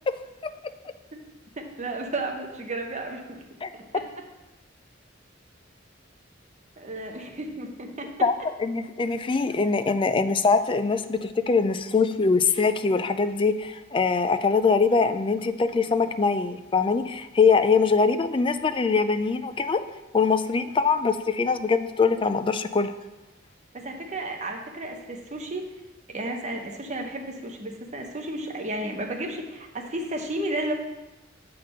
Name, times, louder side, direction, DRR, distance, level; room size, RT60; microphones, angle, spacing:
voice 1, 1.6-3.4 3.7-4.0 6.8-8.3 23.7-25.7 26.1-30.7, right 1 dB, 40° right, 2 dB, 1.0 m, -33 dB
voice 2, 8.6-19.8 20.1-22.9, left 4 dB, 25° left, 10 dB, 0.4 m, -23 dB
7.7 x 4.2 x 6.4 m, 1.0 s
head